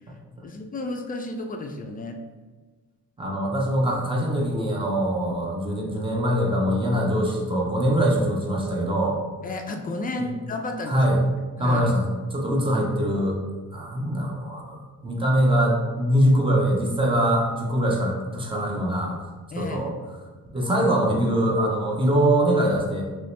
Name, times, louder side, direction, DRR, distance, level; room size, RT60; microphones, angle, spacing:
voice 1, 0.4-2.2 9.4-11.0 11.6-11.9 19.5-19.9, left 2 dB, 30° left, 4 dB, 0.3 m, -32 dB
voice 2, 3.2-9.1 10.2-10.3 10.9-11.2 11.6-12.1 12.3-13.4 13.7-19.2 19.6-19.9 20.5-23.0, right 1 dB, 15° right, -1 dB, 0.7 m, -23 dB
3.0 x 2.7 x 3.2 m, 1.3 s
cardioid pair, 90°, 30 cm